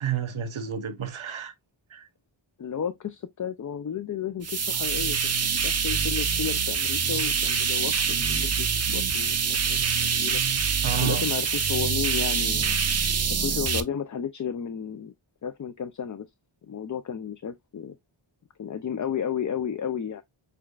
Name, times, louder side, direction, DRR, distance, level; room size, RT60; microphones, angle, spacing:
voice 1, 0.0-1.5 1.9-2.0 10.8-11.2, right 9 dB, 75° right, 0.9 m, -30 dB
voice 2, 2.6-9.4 9.7-10.4 10.9-12.8 13.3-15.1 15.4-16.3 16.6-18.0 18.6-20.2, left 8 dB, 40° left, 0.4 m, -33 dB
sound 1, 4.4-13.8, right 6 dB, 35° right, 0.5 m, -25 dB
6.7 x 2.3 x 2.3 m
wide cardioid pair, 55°, 49 cm